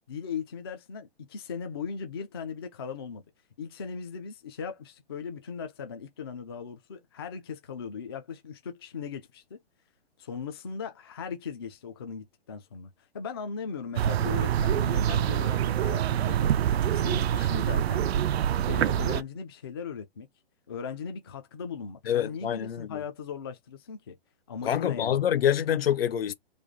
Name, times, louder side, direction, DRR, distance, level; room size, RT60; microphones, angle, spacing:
voice 1, 0.1-3.2 3.6-9.6 10.2-12.9 13.1-18.0 18.7-20.3 20.7-24.2 24.5-25.2, left 6 dB, 25° left, 0.4 m, -38 dB
sound 1, 14.0-19.2, right 10 dB, 90° right, 0.5 m, -25 dB
voice 2, 22.1-23.0 24.6-26.3, left 10 dB, 70° left, 0.8 m, -26 dB
3.3 x 2.4 x 3.6 m
hypercardioid pair, 165°, 30 cm